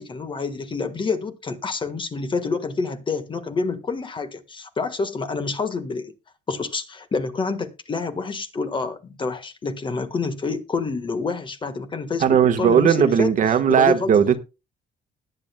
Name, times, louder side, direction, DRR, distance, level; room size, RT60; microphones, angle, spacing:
voice 1, 0.0-6.1 6.5-13.3 13.7-14.4, left 4 dB, 30° left, 1.5 m, -28 dB
voice 2, 12.2-14.4, right 8 dB, 50° right, 1.3 m, -17 dB
20.0 x 8.1 x 2.2 m
cardioid pair, 110°, 17 cm